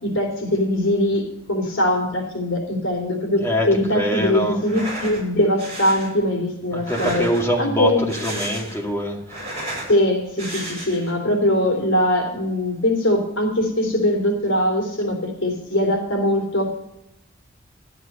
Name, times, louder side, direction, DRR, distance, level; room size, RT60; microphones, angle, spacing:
voice 1, 0.0-7.3 7.6-8.0 9.9-16.8, left 1 dB, 70° left, 2 dB, 3.0 m, -21 dB
voice 2, 3.4-4.6 6.7-9.2, equal, 15° left, -1 dB, 2.2 m, -24 dB
sound 1, 4.6-5.2 5.6-6.1 6.7-7.6 8.0-8.9 9.2-9.9 10.4-11.1, right 1 dB, 30° right, 5.5 m, -32 dB
12.5 x 8.0 x 6.5 m, 0.85 s
head